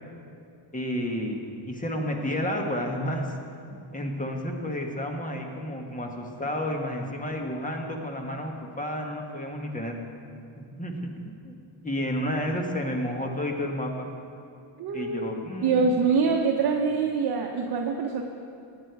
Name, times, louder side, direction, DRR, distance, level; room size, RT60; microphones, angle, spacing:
voice 1, 0.7-3.3 3.7-10.0 10.6-11.5 11.8-14.1 14.9-15.9, left 1 dB, 15° left, 2 dB, 1.5 m, -31 dB
voice 2, 14.8-15.3 15.6-18.2, right 5 dB, 50° right, 1 dB, 1.0 m, -24 dB
16.5 x 10.0 x 4.7 m, 2.5 s
cardioid pair, 120°, 48 cm